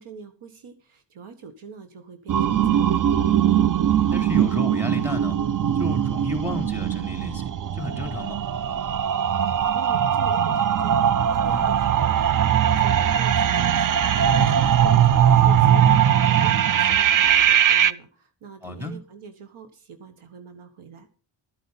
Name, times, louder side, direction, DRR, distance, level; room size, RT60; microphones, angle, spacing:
voice 1, 0.0-3.3 9.7-21.1, right 5 dB, 75° right, 9 dB, 1.6 m, -44 dB
sound 1, 2.3-17.9, right 9 dB, 40° right, 0.5 m, -20 dB
voice 2, 4.1-5.4 5.8-7.5 7.8-8.4 11.5-11.7 18.6-18.9, equal, 5° right, 4 dB, 3.3 m, -31 dB
13.0 x 8.1 x 5.7 m, 0.38 s
cardioid pair, 70°, 49 cm